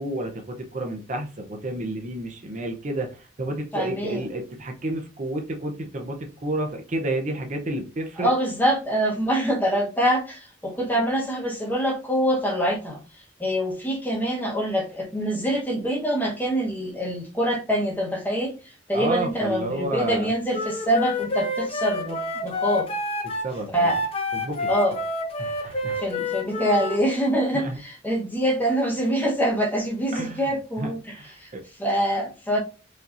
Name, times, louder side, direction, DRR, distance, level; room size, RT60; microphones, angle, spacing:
voice 1, 0.0-8.3 18.9-20.3 23.4-23.9 24.3-24.7 25.4-26.0 27.5-27.8 30.1-30.5 30.8-30.9 31.2-31.6, right 1 dB, 40° right, 3 dB, 0.6 m, -30 dB
voice 2, 3.7-4.3 8.2-13.0 13.4-22.9 23.7-24.0 24.7-25.0 26.0-31.5 31.8-32.6, equal, 10° left, -1 dB, 1.0 m, -25 dB
Wind instrument woodwind instrument, 20.5-27.0, left 2 dB, 30° left, 0.7 m, -28 dB
5.0 x 2.8 x 2.5 m, 0.33 s
head